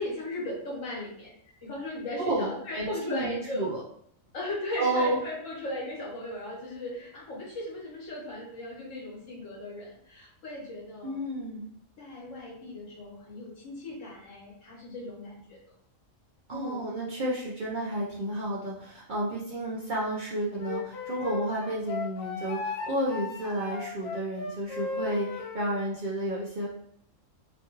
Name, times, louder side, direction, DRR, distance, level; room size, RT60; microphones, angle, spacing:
voice 1, 0.0-3.7 4.3-11.2 12.0-15.7 16.5-16.8, left 1 dB, 70° left, -4 dB, 1.4 m, -37 dB
voice 2, 2.2-3.8 4.8-5.2 11.0-11.7 16.5-26.7, right 1 dB, 50° right, -7 dB, 0.6 m, -31 dB
Wind instrument woodwind instrument, 20.6-25.6, left 3 dB, 90° left, 1.1 m, -36 dB
3.0 x 2.3 x 3.0 m, 0.68 s
omnidirectional pair, 1.4 m